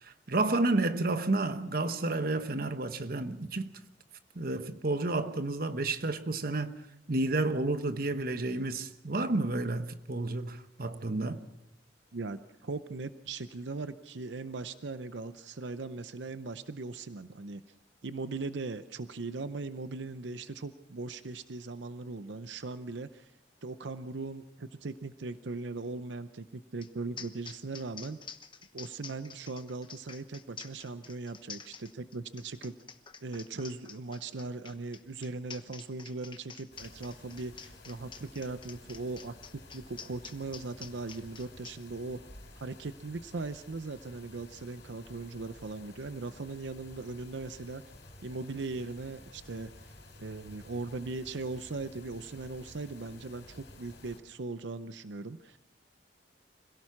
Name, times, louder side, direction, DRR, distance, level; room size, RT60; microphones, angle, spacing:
voice 1, 0.0-3.7 4.3-6.8 7.1-11.5, right 2 dB, 55° right, 1.1 m, -31 dB
voice 2, 12.1-17.6 18.0-23.3 23.6-28.2 28.7-32.8 33.2-42.2 42.6-47.8 48.2-49.9 50.2-55.6, right 3 dB, 85° right, 0.7 m, -39 dB
sound 1, 26.8-26.9 27.2-41.8, left 6 dB, 30° left, 1.1 m, -48 dB
sound 2, 36.7-54.2, left 2 dB, 75° left, 4.2 m, -53 dB
26.0 x 17.0 x 5.9 m
head